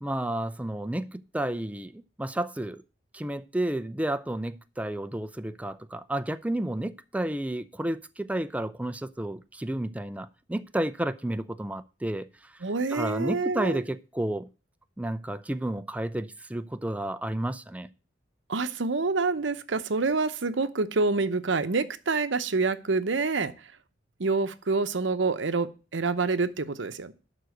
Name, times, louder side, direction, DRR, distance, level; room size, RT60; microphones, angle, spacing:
voice 1, 0.0-2.8 3.1-12.5 12.9-14.5 15.0-17.9, right 1 dB, 10° right, 0.4 m, -31 dB
voice 2, 12.6-13.8 18.5-23.7 24.2-27.1, right 3 dB, 70° right, 0.8 m, -27 dB
11.5 x 4.0 x 7.8 m
head